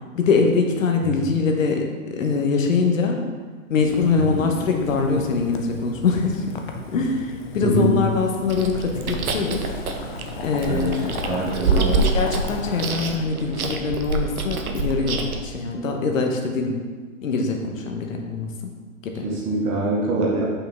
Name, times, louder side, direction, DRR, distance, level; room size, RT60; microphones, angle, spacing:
voice 1, 0.1-3.2 3.7-6.6 6.9-9.7 10.4-11.1 11.8-16.8 17.2-18.7 19.0-19.3, left 4 dB, 65° left, 3 dB, 1.2 m, -23 dB
Boiling, 3.8-13.1, left 5 dB, 35° left, 0.6 m, -36 dB
Chewing mastication, 8.5-15.4, right 3 dB, 85° right, 0.9 m, -26 dB
voice 2, 10.7-12.0 19.2-20.4, right 2 dB, 15° right, -4 dB, 0.8 m, -24 dB
6.9 x 5.6 x 3.5 m, 1.5 s
hypercardioid pair, 145°, 42 cm